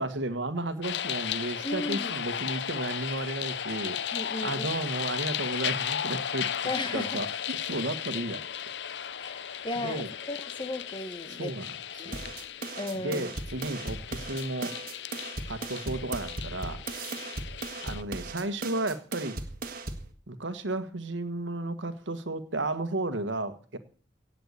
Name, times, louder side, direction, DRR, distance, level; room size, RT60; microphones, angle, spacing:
voice 1, 0.0-6.5 6.9-8.4 9.7-10.1 11.3-12.3 12.9-14.7 15.5-16.8 17.8-19.4 20.3-23.8, right 2 dB, 80° right, 10 dB, 1.6 m, -33 dB
sound 1, 0.8-18.0, left 9 dB, 65° left, 0.6 m, -35 dB
voice 2, 1.6-2.1 4.1-4.7 6.6-7.2 9.2-11.5 12.0-12.3 12.8-13.3, left 2 dB, 25° left, 11 dB, 1.2 m, -35 dB
sound 2, 12.1-20.1, right 3 dB, 50° right, 1.7 m, -38 dB
17.0 x 5.9 x 8.3 m, 0.42 s
head